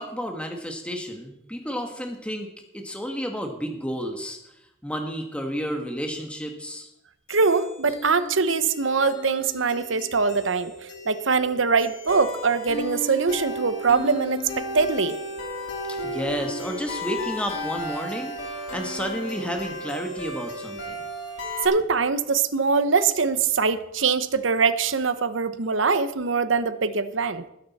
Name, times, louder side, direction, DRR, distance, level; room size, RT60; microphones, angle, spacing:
voice 1, 0.0-2.5 2.7-4.5 4.8-6.9 16.0-18.3 18.7-21.0, equal, 5° left, 3 dB, 1.4 m, -31 dB
Happy Night (Loop), 7.3-21.7, left 1 dB, 85° left, 3.9 m, -35 dB
voice 2, 7.3-15.2 21.6-27.5, right 5 dB, 85° right, 12 dB, 1.0 m, -23 dB
19.5 x 9.9 x 4.2 m, 0.84 s
head